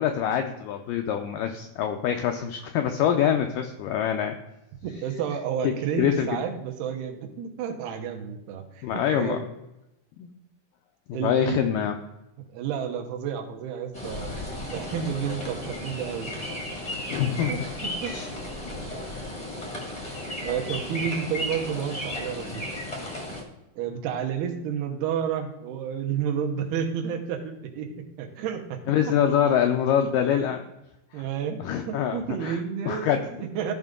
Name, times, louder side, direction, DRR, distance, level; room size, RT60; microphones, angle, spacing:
voice 1, 0.0-4.4 5.6-6.3 8.8-9.4 10.2-10.3 11.1-12.0 17.1-17.5 18.0-18.3 28.9-30.6 31.1-31.2 31.6-32.6 32.9-33.3, left 9 dB, 90° left, 5 dB, 1.9 m, -25 dB
voice 2, 4.8-9.5 11.1-11.7 12.5-14.3 14.7-16.3 17.5-18.2 20.4-22.7 23.8-27.9 28.2-28.8 31.1-33.7, right 8 dB, 80° right, 3 dB, 2.9 m, -31 dB
sound 1, 13.9-23.4, left 1 dB, 40° left, 0.5 m, -34 dB
14.0 x 5.2 x 3.7 m, 0.93 s
omnidirectional pair, 4.5 m